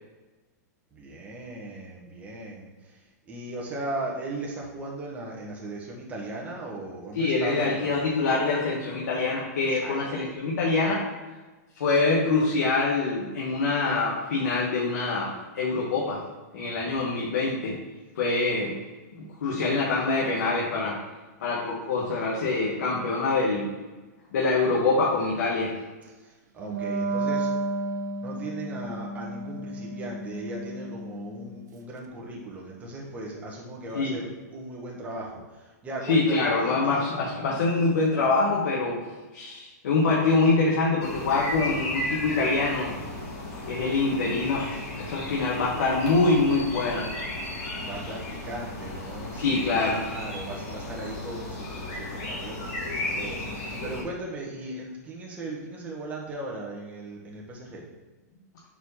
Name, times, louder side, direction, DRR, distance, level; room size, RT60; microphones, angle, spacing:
voice 1, 0.9-3.0 3.3-8.1 9.7-10.1 16.7-17.1 26.2-26.3 26.5-27.5 28.2-37.0 47.8-57.8, right 2 dB, 15° right, -3 dB, 1.3 m, -37 dB
voice 2, 7.1-11.1 11.8-16.2 16.5-17.8 18.2-18.7 19.2-21.0 21.4-23.7 24.3-25.7 33.9-34.2 36.0-39.0 39.3-42.9 43.7-47.1 49.4-50.0, left 3 dB, 75° left, -4 dB, 1.3 m, -25 dB
Wind instrument woodwind instrument, 26.6-31.7, right 2 dB, 80° right, 0.7 m, -32 dB
sound 1, 41.0-54.0, left 1 dB, 45° left, 2.1 m, -34 dB
4.8 x 4.0 x 5.5 m, 1.2 s
hypercardioid pair, 140°, 9 cm